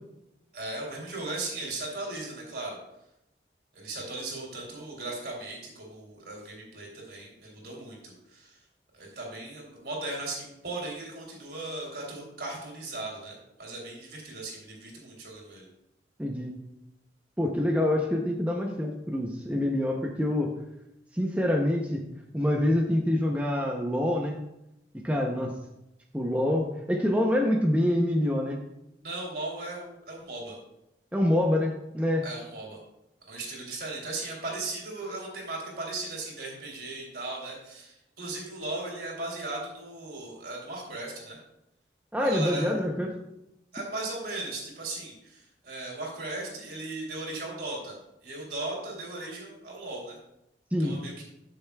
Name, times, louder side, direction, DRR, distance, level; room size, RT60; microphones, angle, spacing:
voice 1, 0.5-2.8 3.7-8.6 8.9-15.7 29.0-30.6 32.2-32.8 33.3-41.4 42.2-42.7 43.7-47.9 48.2-50.2 50.8-51.2, right 2 dB, 65° right, -1 dB, 3.0 m, -37 dB
voice 2, 16.2-16.5 17.4-20.5 21.1-22.0 22.3-24.4 24.9-25.5 26.1-28.6 31.1-32.2 42.1-43.1 50.7-51.0, left 1 dB, 10° right, 0 dB, 0.6 m, -26 dB
13.0 x 6.6 x 2.3 m, 0.86 s
head